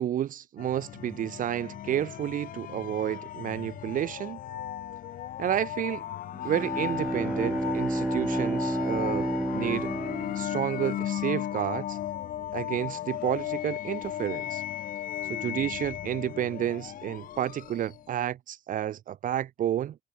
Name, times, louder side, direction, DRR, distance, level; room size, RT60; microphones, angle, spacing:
voice 1, 0.0-4.4 5.4-6.0 6.4-9.9 10.3-12.0 12.5-14.6 15.3-20.0, right 11 dB, 55° right, 1.0 m, -31 dB
sound 1, 0.6-18.1, left 12 dB, 55° left, 0.9 m, -36 dB
Bowed string instrument, 6.3-11.1, right 1 dB, 5° right, 1.3 m, -30 dB
cardioid pair, 110°, 17 cm